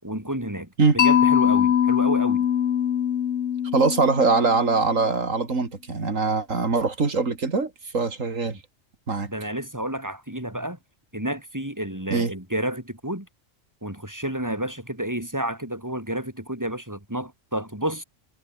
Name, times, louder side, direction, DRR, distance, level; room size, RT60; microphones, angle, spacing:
voice 1, 0.0-0.7 0.9-2.5 9.3-10.8 11.1-13.3 13.8-18.0, right 1 dB, 15° right, 5.8 m, -30 dB
Mallet percussion, 1.0-5.0, left 9 dB, 70° left, 1.3 m, -22 dB
voice 2, 3.7-8.6 9.1-9.3 12.1-12.3, right 4 dB, 90° right, 3.1 m, -22 dB
omnidirectional pair, 1.3 m